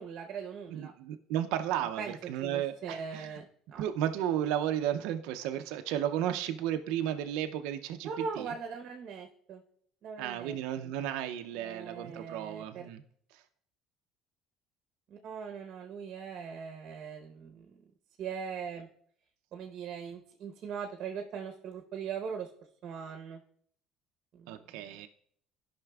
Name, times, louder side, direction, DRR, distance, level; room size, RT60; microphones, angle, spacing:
voice 1, 0.0-0.9 2.0-2.2 2.4-3.8 8.0-9.6 10.0-10.6 10.8-10.9 11.5-12.9 15.1-17.8 18.2-18.9 19.5-22.5 22.8-23.4 24.3-25.1, right 6 dB, 60° right, 4 dB, 0.8 m, -40 dB
voice 2, 0.7-3.3 3.8-8.1 8.4-8.5 10.2-13.0 13.3-13.4 24.5-25.1, right 11 dB, 80° right, 7 dB, 0.4 m, -33 dB
12.0 x 5.6 x 2.3 m, 0.64 s
supercardioid pair, 85°, 0 cm